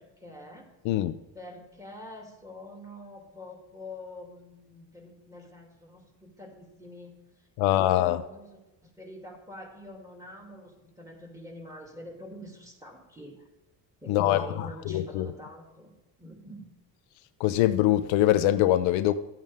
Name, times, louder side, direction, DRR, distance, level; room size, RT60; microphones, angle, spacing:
voice 1, 0.0-0.7 1.3-7.1 7.6-13.3 14.0-16.6, left 1 dB, 5° right, 2.6 m, -46 dB
voice 2, 0.8-1.2 7.6-8.2 14.1-15.3 17.4-19.1, left 13 dB, 75° left, 0.7 m, -23 dB
12.5 x 8.6 x 3.5 m
supercardioid pair, 85°, 48 cm